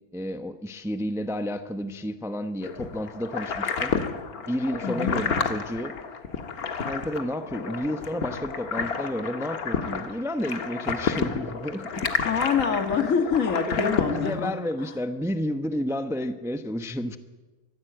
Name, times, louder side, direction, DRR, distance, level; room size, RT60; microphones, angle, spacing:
voice 1, 0.1-3.9 4.5-5.9 6.8-12.1 13.7-17.2, equal, ahead, 9 dB, 0.7 m, -31 dB
sound 1, 2.6-14.4, left 5 dB, 85° left, 2.0 m, -30 dB
voice 2, 4.8-5.2 12.3-14.5, left 6 dB, 65° left, 6 dB, 2.0 m, -25 dB
23.0 x 15.0 x 8.0 m, 1.2 s
omnidirectional pair, 1.5 m